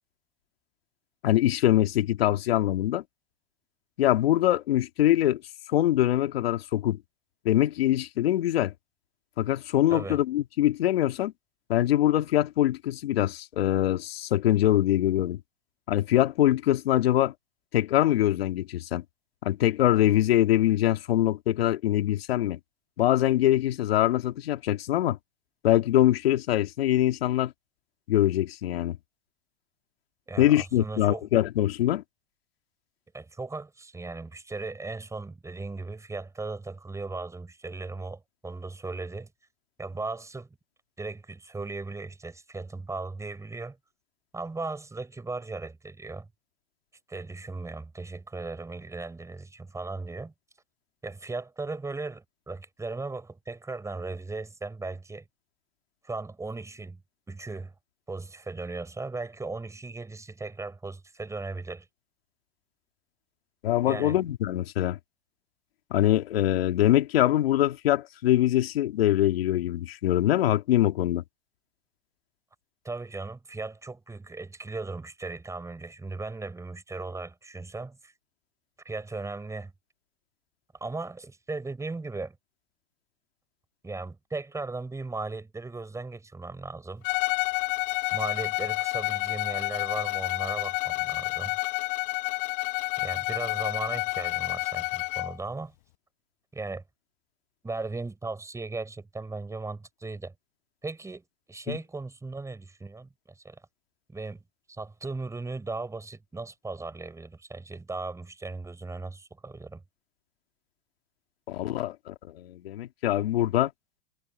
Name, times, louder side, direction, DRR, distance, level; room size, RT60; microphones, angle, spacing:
voice 1, 1.2-3.0 4.0-5.4 5.7-7.0 7.4-8.7 9.4-11.3 11.7-15.4 15.9-17.3 17.7-19.0 19.4-22.6 23.0-25.2 25.6-27.5 28.1-29.0 30.4-32.0 63.6-65.0 65.9-71.2 101.7-101.8 111.5-113.7, left 13 dB, 85° left, 2.7 m, -23 dB
voice 2, 30.3-31.3 33.1-39.3 39.8-40.5 41.0-43.8 44.3-46.3 47.1-50.3 51.0-55.3 56.0-57.0 57.3-57.7 58.1-61.9 63.8-64.2 72.8-78.1 78.9-79.7 80.8-82.4 83.8-87.1 88.1-91.6 93.0-95.7 96.5-96.8 97.6-100.3 100.8-103.6 104.1-104.4 104.7-109.8, right 3 dB, 10° right, 5.3 m, -37 dB
Bowed string instrument, 87.0-95.4, left 26 dB, 65° left, 1.3 m, -29 dB
supercardioid pair, 125°, 29 cm